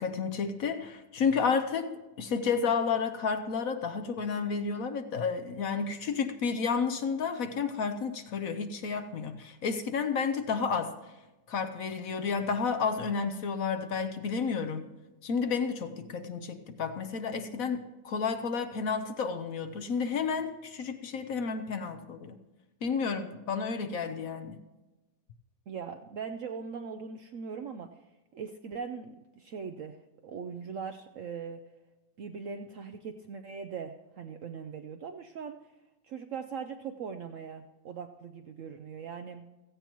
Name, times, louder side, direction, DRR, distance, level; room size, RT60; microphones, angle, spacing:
voice 1, 0.0-10.9 11.5-14.9 15.2-22.4 22.8-24.6, left 5 dB, 60° left, 8 dB, 1.0 m, -31 dB
voice 2, 25.7-27.9 28.3-30.0 30.2-31.6 32.2-35.6 36.0-39.5, right 6 dB, 65° right, 5 dB, 0.8 m, -40 dB
16.5 x 15.0 x 3.0 m, 1.1 s
omnidirectional pair, 1.9 m